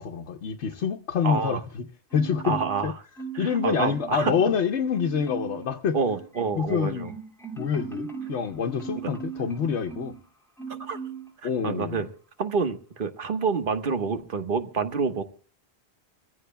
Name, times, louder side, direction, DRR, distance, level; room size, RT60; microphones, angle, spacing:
voice 1, 0.0-1.9 2.1-2.6 2.8-2.9 3.4-6.0 6.6-7.2 7.6-10.1 11.4-12.0, left 7 dB, 90° left, 1.1 m, -27 dB
voice 2, 1.2-1.6 2.4-2.9 3.3-4.3 5.9-7.1 9.0-9.1 10.8-11.0 11.6-12.1 12.4-15.2, right 5 dB, 55° right, 1.4 m, -27 dB
Marimba xylophone, 2.1-2.9 3.2-4.6 4.9-5.7 6.0-10.2 10.6-11.3 11.7-11.9, right 5 dB, ahead, 2.4 m, -38 dB
26.0 x 15.5 x 2.2 m
omnidirectional pair, 1.1 m